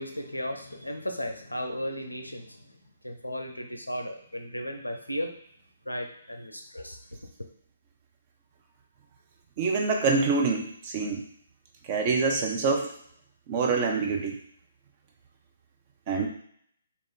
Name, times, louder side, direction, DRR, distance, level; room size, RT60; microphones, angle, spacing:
voice 1, 0.0-2.7 3.0-5.4 5.9-7.0, equal, 90° left, 5 dB, 0.5 m, -35 dB
voice 2, 9.6-11.2 11.9-12.9 13.5-14.4 16.1-16.3, right 4 dB, 35° right, 1 dB, 0.6 m, -26 dB
2.9 x 2.4 x 3.6 m, 0.64 s
figure-of-eight pair, 135°, 0 cm